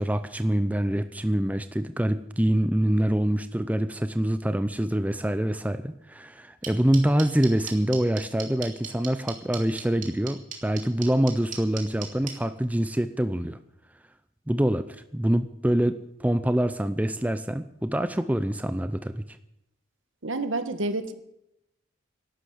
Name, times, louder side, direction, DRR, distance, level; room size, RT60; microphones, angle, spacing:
voice 1, 0.0-13.6 14.5-19.2, right 1 dB, 10° right, 11 dB, 0.5 m, -25 dB
sound 1, 6.6-12.3, right 8 dB, 40° right, 3.0 m, -35 dB
voice 2, 20.2-21.1, right 2 dB, 70° right, 10 dB, 1.5 m, -29 dB
12.5 x 11.5 x 7.8 m, 0.83 s
head